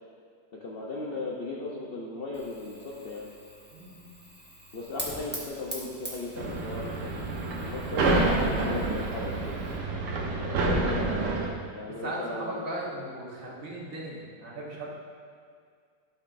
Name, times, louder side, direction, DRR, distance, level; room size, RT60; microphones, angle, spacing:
voice 1, 0.6-3.3 4.7-9.6 10.4-11.1 11.7-12.8, left 2 dB, 55° left, -4 dB, 0.7 m, -37 dB
Fire, 2.3-9.8, right 1 dB, 10° right, 1.0 m, -44 dB
voice 2, 3.7-4.1 10.5-11.1 11.8-14.9, right 1 dB, 55° right, -5 dB, 1.7 m, -37 dB
sound 1, 6.4-11.5, right 2 dB, 80° right, 1.5 m, -28 dB
12.0 x 6.0 x 2.6 m, 2.1 s
omnidirectional pair, 1.8 m